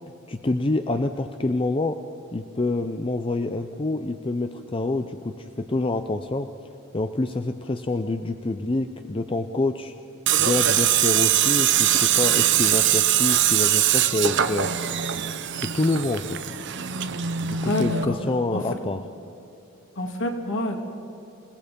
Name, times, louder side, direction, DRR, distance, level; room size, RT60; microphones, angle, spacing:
voice 1, 0.3-2.0 2.3-6.5 6.9-9.9 10.4-14.8 15.5-16.4 17.4-19.0, left 2 dB, 25° left, 7 dB, 0.5 m, -27 dB
Tools, 10.3-18.0, right 11 dB, 50° right, 0.8 m, -22 dB
voice 2, 17.5-18.2 18.5-18.6 20.0-20.8, left 1 dB, 55° left, 3 dB, 2.2 m, -27 dB
28.0 x 18.5 x 5.3 m, 2.8 s
head